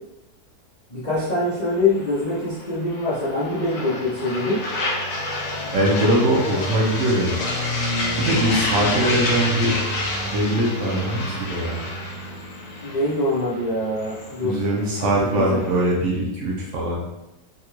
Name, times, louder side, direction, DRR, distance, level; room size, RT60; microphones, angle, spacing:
voice 1, 0.9-4.6 12.8-14.6 15.0-15.6, left 2 dB, 90° left, -9 dB, 0.3 m, -24 dB
sound 1, 1.1-15.9, left 2 dB, 75° left, 1.2 m, -29 dB
voice 2, 5.7-7.4 8.2-9.8 10.2-11.9 14.4-17.0, right 1 dB, 65° right, -2 dB, 0.7 m, -22 dB
3.6 x 2.2 x 2.9 m, 0.93 s
omnidirectional pair, 1.8 m